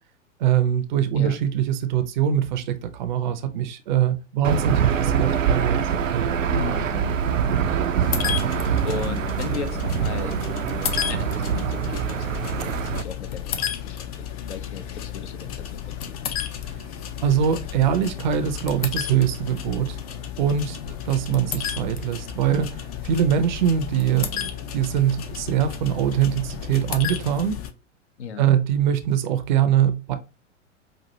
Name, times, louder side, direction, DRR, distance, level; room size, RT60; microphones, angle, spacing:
voice 1, 0.4-5.8 6.1-6.3 16.6-16.8 17.2-20.0 20.4-27.6 28.4-30.1, right 9 dB, 40° right, 0.6 m, -23 dB
Aircraft / Engine, 4.4-13.0, right 7 dB, 80° right, 0.5 m, -24 dB
voice 2, 6.5-7.2 7.8-10.3 11.1-16.2 28.2-28.5, left 6 dB, 60° left, 0.8 m, -36 dB
sound 1, 8.0-27.7, left 9 dB, 30° left, 0.5 m, -32 dB
5.3 x 2.4 x 2.9 m
figure-of-eight pair, 100°, 39 cm